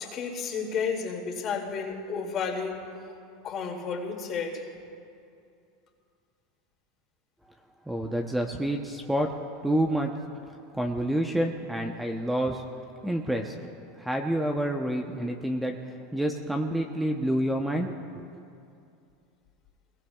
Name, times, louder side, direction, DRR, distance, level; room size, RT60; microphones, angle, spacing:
voice 1, 0.0-2.9 3.4-4.6, left 5 dB, 40° left, 0 dB, 2.5 m, -32 dB
voice 2, 7.9-9.3 9.6-10.1 10.7-12.6 13.0-13.5 14.0-15.8 16.1-18.3, right 1 dB, 5° right, 3 dB, 0.9 m, -28 dB
24.0 x 21.0 x 2.4 m, 2.5 s
supercardioid pair, 115°, 0 cm